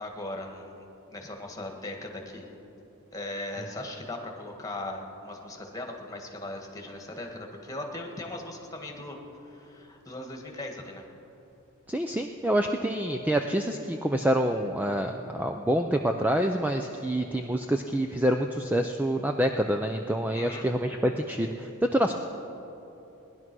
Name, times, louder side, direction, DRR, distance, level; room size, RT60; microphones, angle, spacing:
voice 1, 0.0-2.5 3.1-11.0 20.3-20.7, left 1 dB, 15° left, 2 dB, 1.7 m, -39 dB
voice 2, 11.9-22.1, right 1 dB, 5° right, 4 dB, 0.4 m, -27 dB
18.5 x 11.0 x 6.2 m, 2.9 s
head